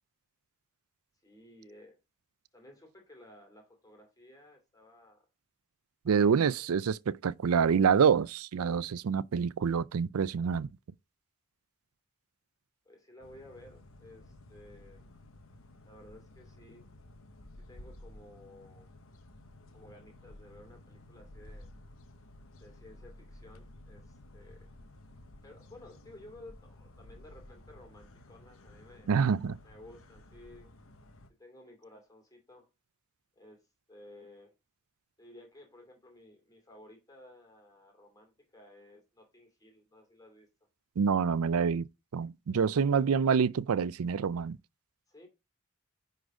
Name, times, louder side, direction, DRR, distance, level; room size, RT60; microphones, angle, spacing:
voice 1, 1.2-2.0 2.5-5.3 6.1-6.7 12.8-15.1 15.8-16.9 17.6-18.9 19.7-21.7 22.6-24.7 25.4-29.1 29.6-30.7 31.4-32.7 33.4-33.6 33.9-34.5 35.2-40.5 42.7-43.1 45.1-45.3, left 1 dB, 15° left, 2.5 m, -55 dB
voice 2, 6.1-10.7 29.1-29.6 41.0-44.6, right 6 dB, 80° right, 0.4 m, -27 dB
sound 1, 13.2-31.3, left 1 dB, 70° left, 1.0 m, -54 dB
9.9 x 4.0 x 4.8 m
head